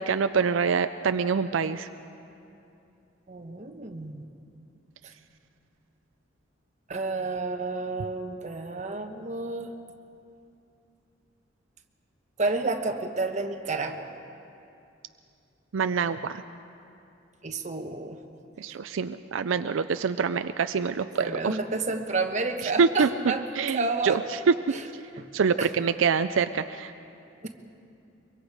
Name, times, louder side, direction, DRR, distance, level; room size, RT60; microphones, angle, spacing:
voice 1, 0.0-1.9 15.7-16.4 18.6-21.6 22.8-23.1 23.6-24.2 24.5-24.6 25.3-26.9, right 5 dB, 80° right, 10 dB, 0.5 m, -25 dB
voice 2, 3.3-4.2 5.0-5.1 6.9-9.7 12.4-14.1 17.4-18.2 21.2-24.2 24.7-24.8 25.2-25.3 25.6-25.7 27.4-27.5, right 3 dB, 40° right, 4 dB, 1.2 m, -30 dB
23.5 x 23.5 x 4.9 m, 2.7 s
head